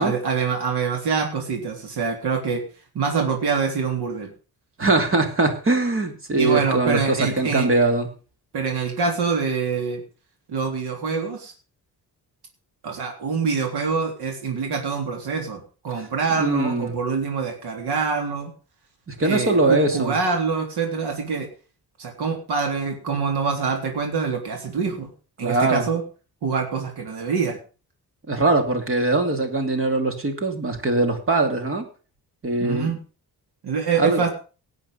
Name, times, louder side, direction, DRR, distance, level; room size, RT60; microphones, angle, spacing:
voice 1, 0.0-2.6 2.9-4.3 6.4-7.7 8.5-10.0 10.5-11.5 12.8-18.5 19.2-21.5 22.0-25.1 25.4-26.0 26.4-27.6 32.6-33.0 33.6-34.3, right 5 dB, 85° right, 3 dB, 3.5 m, -25 dB
voice 2, 4.8-8.1 16.4-17.0 19.1-20.1 25.4-25.9 28.3-31.8 32.4-32.9 34.0-34.2, right 2 dB, 35° right, 6 dB, 2.8 m, -21 dB
18.5 x 8.3 x 5.6 m, 0.36 s
wide cardioid pair, 180°, 38 cm